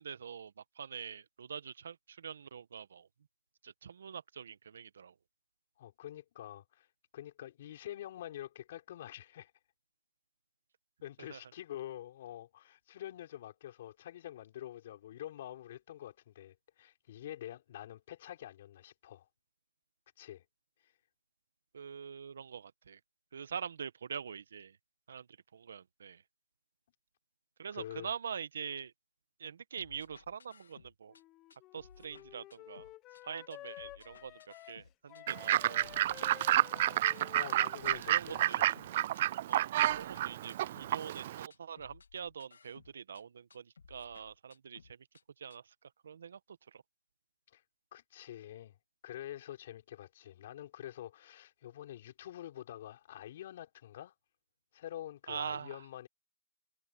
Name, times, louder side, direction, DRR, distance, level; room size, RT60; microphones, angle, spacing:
voice 1, 0.0-3.1 3.6-5.1 11.3-11.4 21.7-23.0 23.3-24.8 25.1-25.3 25.5-26.2 27.6-28.9 29.4-31.1 31.7-32.9 33.2-35.9 36.5-36.7 38.1-38.6 39.5-45.0 45.4-46.8 55.3-55.8, right 7 dB, 65° right, 1.3 m, -44 dB
voice 2, 5.8-6.9 7.1-9.5 11.0-19.3 20.2-20.4 27.7-28.1 37.3-38.7 47.5-47.6 47.9-48.7 49.0-54.1 54.7-56.1, left 12 dB, 45° left, 4.7 m, -46 dB
sound 1, 29.8-31.2 31.5-33.2 33.5-35.2 35.5-37.2 37.5-39.2 39.5-41.2 41.5-43.2 43.5-45.2 45.5-45.6, left 5 dB, 80° left, 3.1 m, -59 dB
Wind instrument woodwind instrument, 31.1-39.1, left 16 dB, 20° left, 1.2 m, -53 dB
Fowl / Bird, 35.3-41.5, right 13 dB, 40° right, 0.3 m, -30 dB
hypercardioid pair, 150°, 0 cm